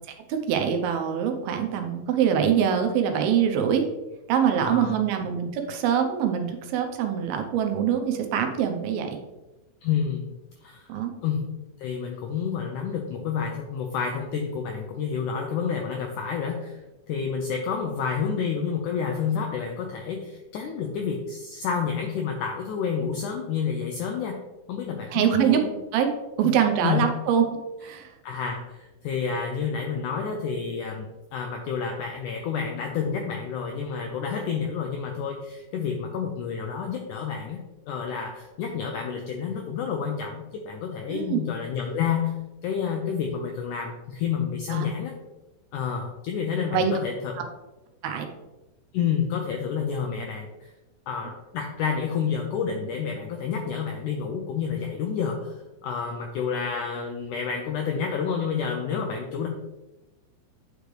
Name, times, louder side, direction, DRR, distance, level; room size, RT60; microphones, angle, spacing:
voice 1, 0.3-3.8 4.3-9.2 10.9-11.1 25.1-25.6 25.9-26.1 26.4-27.5 27.8-28.1 41.1-41.4 44.7-44.9 46.7-46.9 48.0-48.3, right 8 dB, 85° right, 5 dB, 2.6 m, -24 dB
voice 2, 4.6-5.0 9.8-10.3 10.6-10.9 11.2-11.5 11.8-16.8 17.1-24.4 24.7-25.7 26.4-26.5 26.8-27.0 28.2-37.6 37.9-42.3 42.6-45.2 45.7-47.4 48.9-50.7 51.1-55.6 55.8-59.5, left 6 dB, 85° left, 3 dB, 1.8 m, -29 dB
9.1 x 5.2 x 3.3 m, 1.0 s
omnidirectional pair, 4.4 m